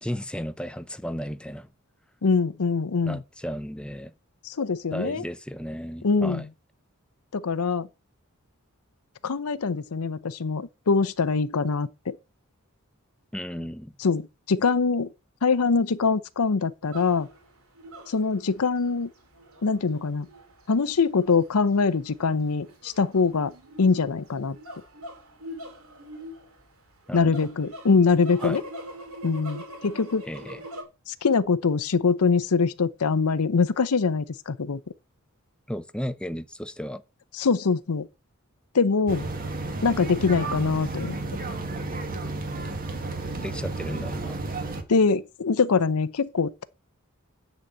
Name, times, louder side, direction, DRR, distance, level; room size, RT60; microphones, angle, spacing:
voice 1, 0.0-1.7 3.0-4.1 4.9-6.5 13.3-14.0 27.1-27.3 28.4-28.6 30.3-30.6 35.7-37.0 43.4-44.4, equal, 5° left, 0.6 m, -34 dB
voice 2, 2.2-3.2 4.4-5.2 6.0-6.4 7.3-7.9 9.2-12.2 14.0-15.1 15.4-17.3 18.1-19.1 19.6-20.3 20.7-23.5 23.8-24.6 27.1-28.6 29.2-30.2 31.1-34.8 37.4-38.1 38.7-39.3 39.8-41.1 44.9-46.6, left 4 dB, 80° left, 0.7 m, -23 dB
sound 1, 16.8-30.8, equal, 70° right, 2.8 m, -43 dB
sound 2, 39.1-44.8, right 2 dB, 40° right, 1.4 m, -32 dB
9.9 x 4.1 x 7.5 m
head